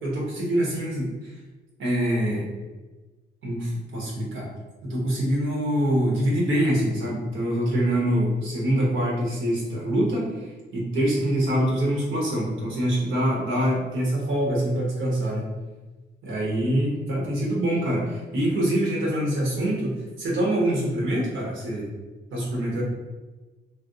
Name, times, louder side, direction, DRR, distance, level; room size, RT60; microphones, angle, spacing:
voice 1, 0.0-1.3 1.8-2.4 3.4-4.5 4.8-15.5 16.2-21.9 22.3-22.8, right 1 dB, 80° right, -3 dB, 1.2 m, -25 dB
2.6 x 2.1 x 3.9 m, 1.2 s
cardioid pair, 90°, 20 cm